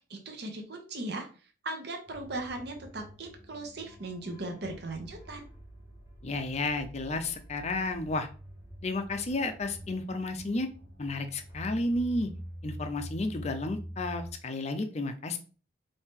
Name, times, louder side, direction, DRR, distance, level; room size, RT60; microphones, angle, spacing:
voice 1, 0.1-1.3 1.6-5.5, right 2 dB, 55° right, 3 dB, 0.9 m, -38 dB
sound 1, 2.1-14.3, equal, 15° right, 1.0 m, -46 dB
voice 2, 6.2-8.3 8.8-10.7 11.0-12.3 12.6-15.4, left 2 dB, 35° left, 7 dB, 0.5 m, -32 dB
4.4 x 2.8 x 3.6 m, 0.37 s
head